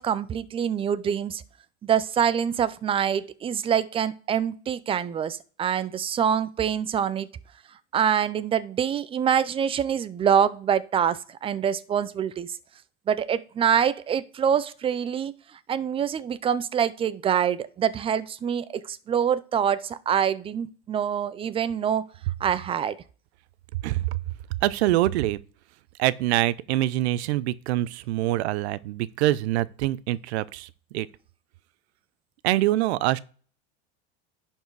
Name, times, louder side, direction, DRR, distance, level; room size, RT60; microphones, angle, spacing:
voice 1, 0.0-1.4 1.8-7.3 7.9-12.6 13.1-15.3 15.7-22.0 22.4-23.0, right 8 dB, 15° right, 0.4 m, -25 dB
voice 2, 23.8-24.2 24.6-25.4 26.0-30.7 30.9-31.1 32.4-33.2, right 15 dB, 80° right, 0.7 m, -24 dB
11.0 x 4.5 x 4.7 m
supercardioid pair, 135°, 32 cm